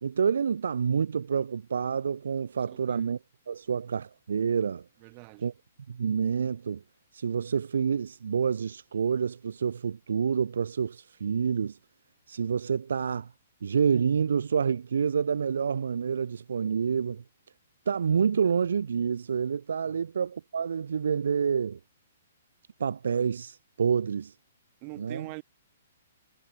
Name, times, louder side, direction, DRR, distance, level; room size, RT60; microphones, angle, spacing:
voice 1, 0.0-3.2 3.5-4.8 5.4-5.5 5.9-6.8 7.1-11.8 12.3-13.3 13.6-17.2 17.9-21.8 22.8-24.3 25.0-25.2, right 6 dB, 85° right, 0.5 m, -28 dB
voice 2, 5.0-5.5 19.8-20.0 24.8-25.4, right 38 dB, 30° right, 2.7 m, -43 dB
hypercardioid pair, 160°, 0 cm